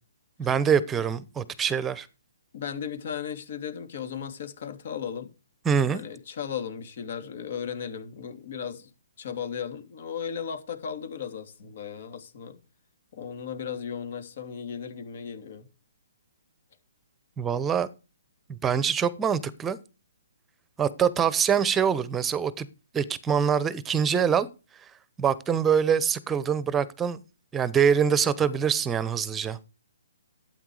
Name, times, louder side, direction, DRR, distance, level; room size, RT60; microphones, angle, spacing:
voice 1, 0.4-2.1 5.6-6.0 17.4-17.9 18.5-19.8 20.8-22.7 22.9-24.5 25.2-27.2 27.5-29.6, right 7 dB, 15° right, 1.0 m, -24 dB
voice 2, 2.5-5.3 5.9-8.9 9.2-12.6 13.1-15.7, left 7 dB, 55° left, 2.9 m, -36 dB
12.0 x 9.0 x 4.9 m
hypercardioid pair, 150°, 0 cm